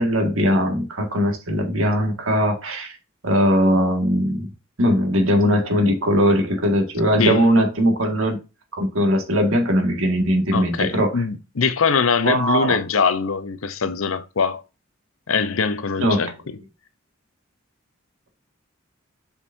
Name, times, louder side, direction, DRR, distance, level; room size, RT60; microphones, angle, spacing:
voice 1, 0.0-3.0 3.2-4.5 4.8-8.4 8.8-11.2 12.2-12.8 16.0-16.3, equal, 80° right, 1.9 m, -20 dB
voice 2, 10.5-14.6 15.3-16.3, left 5 dB, 80° left, 0.7 m, -22 dB
7.1 x 5.3 x 2.7 m
head